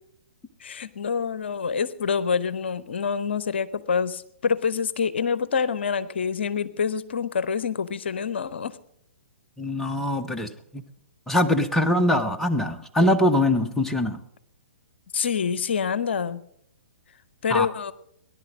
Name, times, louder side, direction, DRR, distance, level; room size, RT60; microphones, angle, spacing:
voice 1, 0.6-8.8 15.1-16.4 17.4-17.9, left 6 dB, 55° left, 17 dB, 0.7 m, -26 dB
voice 2, 9.6-10.8 11.3-14.2 17.5-17.7, left 1 dB, 5° left, 5 dB, 0.8 m, -23 dB
18.0 x 11.0 x 6.1 m, 0.72 s
figure-of-eight pair, 120°, 7 cm